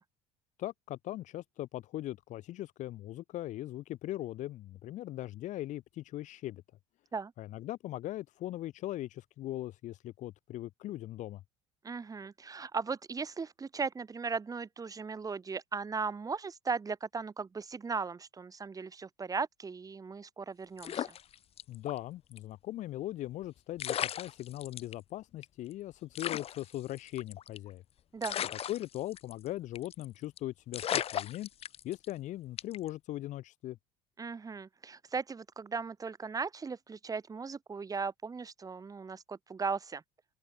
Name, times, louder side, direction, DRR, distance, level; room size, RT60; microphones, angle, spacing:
voice 1, 0.6-6.6 7.4-11.4 21.7-27.8 28.7-31.5 31.8-33.8, left 14 dB, 60° left, 7.5 m, -40 dB
voice 2, 11.8-21.1 28.1-28.4 34.2-40.0, right 5 dB, 25° right, 3.4 m, -37 dB
sound 1, 20.8-22.0 22.3-22.4 23.4-23.5 23.8-24.9 25.4-25.5 25.7-25.8 26.1-27.7 28.2-29.5 29.7-30.0 30.4-30.5 30.7-32.1 32.6-32.9, left 10 dB, 45° left, 1.4 m, -36 dB
open air
supercardioid pair, 90°, 14 cm